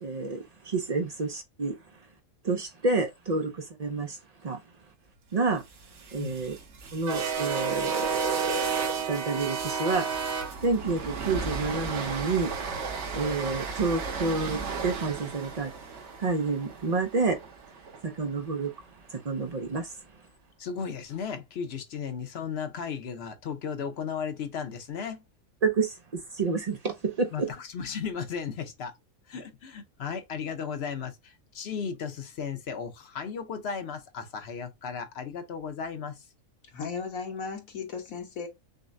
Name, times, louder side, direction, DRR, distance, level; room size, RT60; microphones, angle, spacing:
voice 1, 0.0-1.8 2.4-4.6 5.3-5.6 6.1-6.6 6.9-10.1 10.6-12.5 12.9-17.4 18.0-18.7 19.1-20.0 25.6-27.5, right 3 dB, 80° right, 0.3 m, -29 dB
sound 1, 5.8-18.0, right 5 dB, 55° right, 1.1 m, -32 dB
voice 2, 20.6-25.2 27.3-28.9 29.3-36.2, left 6 dB, 55° left, 0.9 m, -35 dB
voice 3, 36.7-38.5, left 5 dB, 70° left, 1.4 m, -35 dB
6.3 x 2.1 x 2.6 m
omnidirectional pair, 1.5 m